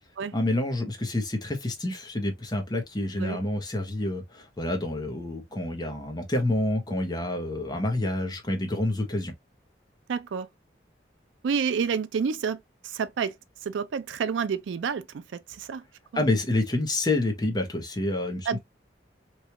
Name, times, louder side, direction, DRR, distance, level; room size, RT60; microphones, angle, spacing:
voice 1, 0.3-9.3 16.1-18.6, left 1 dB, 20° left, 0.7 m, -28 dB
voice 2, 10.1-10.5 11.4-13.3 13.6-15.2 15.5-15.8 16.1-16.2 18.5-18.6, right 6 dB, 85° right, 0.4 m, -29 dB
3.1 x 2.3 x 2.7 m
head